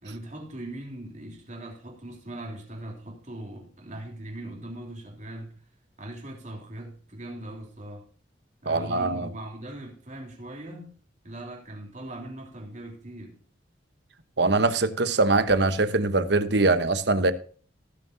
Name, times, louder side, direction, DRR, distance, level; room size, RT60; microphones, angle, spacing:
voice 1, 0.0-5.6 6.0-8.0 8.6-11.0 11.2-13.4, right 1 dB, 40° right, 3.2 m, -40 dB
voice 2, 8.7-9.3 14.4-17.3, right 3 dB, 60° right, 1.0 m, -22 dB
18.5 x 7.5 x 2.7 m
head